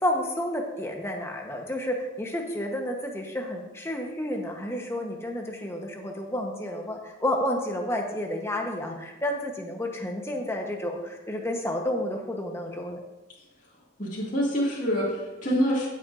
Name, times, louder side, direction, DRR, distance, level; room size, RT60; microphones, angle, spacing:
voice 1, 0.0-13.0, left 1 dB, 15° left, 1 dB, 1.1 m, -30 dB
voice 2, 14.0-15.9, equal, 40° left, -6 dB, 2.3 m, -26 dB
14.5 x 7.7 x 2.6 m, 1.1 s
head